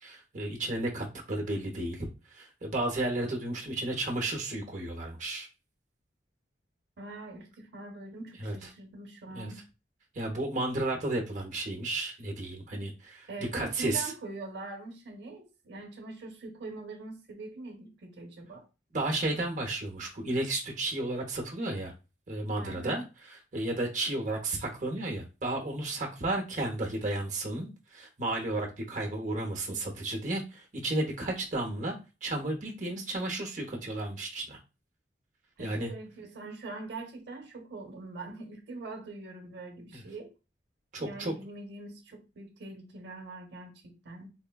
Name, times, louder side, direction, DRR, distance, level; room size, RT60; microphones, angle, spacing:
voice 1, 0.0-5.5 8.4-8.5 9.3-9.5 10.1-14.1 18.9-21.9 22.3-23.0 23.5-32.0 32.2-34.6 35.6-35.9 39.9-40.0 40.9-41.3, right 2 dB, 45° right, 0.8 m, -33 dB
voice 2, 7.0-9.7 13.3-18.7 22.6-23.0 35.6-40.3 41.0-44.3, right 3 dB, 75° right, 0.7 m, -43 dB
4.1 x 2.2 x 2.3 m
head